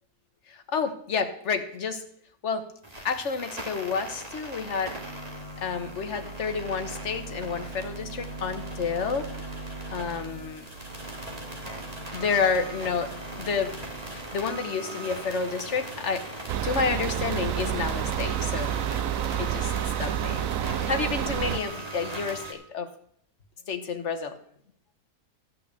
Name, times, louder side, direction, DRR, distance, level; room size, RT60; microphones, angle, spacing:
voice 1, 0.7-2.0 2.4-2.6 3.0-4.9 5.6-9.3 9.9-10.6 12.1-13.1 13.4-13.7 14.1-16.2 16.6-18.7 19.4-19.7 20.0-22.9 23.7-24.4, left 5 dB, 50° left, 7 dB, 1.5 m, -29 dB
sound 1, 2.8-22.5, right 2 dB, 25° right, 2.2 m, -39 dB
sound 2, 16.5-21.6, right 10 dB, 70° right, 1.0 m, -29 dB
14.0 x 5.7 x 8.2 m, 0.66 s
omnidirectional pair, 1.7 m